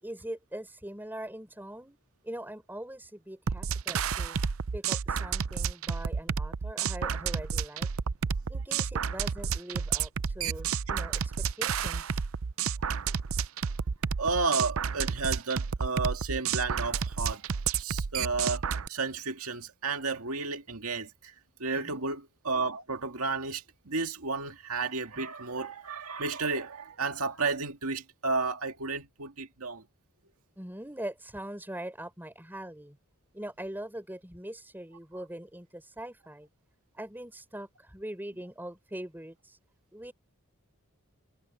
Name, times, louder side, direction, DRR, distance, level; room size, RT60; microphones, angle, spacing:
voice 1, 0.0-2.0 2.2-4.4 4.7-7.9 8.5-12.2 21.7-22.1 30.6-33.0 33.3-36.5 36.9-39.6 39.9-40.1, right 1 dB, 10° right, 5.1 m, -42 dB
sound 1, 3.5-18.9, right 6 dB, 70° right, 0.6 m, -31 dB
voice 2, 12.8-13.1 14.2-17.4 17.8-18.6 18.9-21.3 21.6-29.8, right 4 dB, 85° right, 2.0 m, -32 dB
head